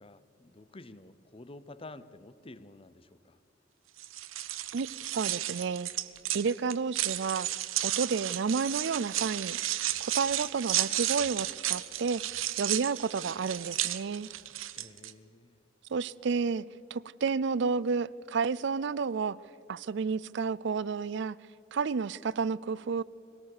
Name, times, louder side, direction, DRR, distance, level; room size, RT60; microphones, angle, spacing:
voice 1, 0.0-3.4 14.7-15.6, left 2 dB, 30° left, 14 dB, 0.7 m, -50 dB
sound 1, 4.0-15.1, right 13 dB, 85° right, 0.8 m, -33 dB
voice 2, 4.7-5.9 6.3-7.5 7.8-9.6 10.0-12.2 12.6-14.3 15.9-16.6 16.9-19.4 19.7-21.4 21.7-23.0, right 5 dB, 60° right, 21 dB, 0.4 m, -31 dB
21.5 x 18.0 x 6.8 m, 2.7 s
head